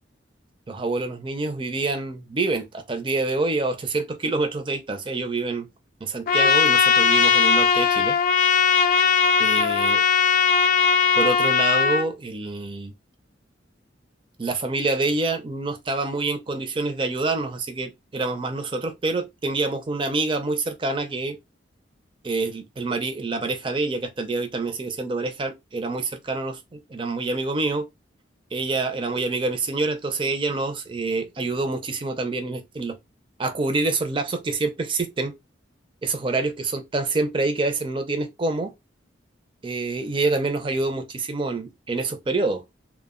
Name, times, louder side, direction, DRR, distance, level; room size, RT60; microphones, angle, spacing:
voice 1, 0.7-5.7 6.0-8.2 9.4-10.0 11.2-12.9 14.4-21.4 22.2-27.9 28.5-33.0 33.4-35.3 36.0-38.7 39.6-42.6, right 3 dB, 25° right, 0.4 m, -26 dB
Trumpet, 6.3-12.0, left 6 dB, 45° left, 0.3 m, -19 dB
2.1 x 2.1 x 3.5 m
head